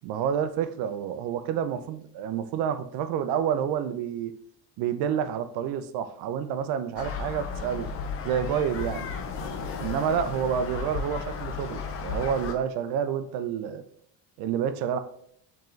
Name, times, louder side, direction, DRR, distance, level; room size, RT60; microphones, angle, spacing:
voice 1, 0.0-4.3 4.8-7.9 8.2-9.1 9.8-13.8 14.4-15.0, right 8 dB, 65° right, 10 dB, 0.5 m, -29 dB
sound 1, 7.0-12.5, left 5 dB, 30° left, 0.5 m, -34 dB
4.5 x 3.7 x 3.1 m, 0.68 s
cardioid pair, 160°, 44 cm